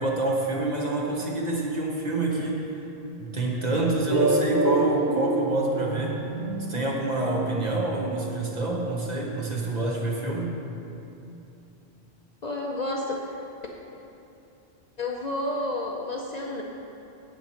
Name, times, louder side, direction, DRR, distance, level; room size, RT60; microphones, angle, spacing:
voice 1, 0.0-2.7 3.2-6.2 6.7-10.6, right 2 dB, 40° right, -2 dB, 1.2 m, -27 dB
sound 1, 4.1-8.6, right 2 dB, 75° left, 2.2 m, -27 dB
voice 2, 12.4-13.4 15.0-16.6, left 1 dB, 45° left, -1 dB, 0.7 m, -30 dB
7.5 x 7.0 x 5.7 m, 2.8 s
omnidirectional pair, 1.1 m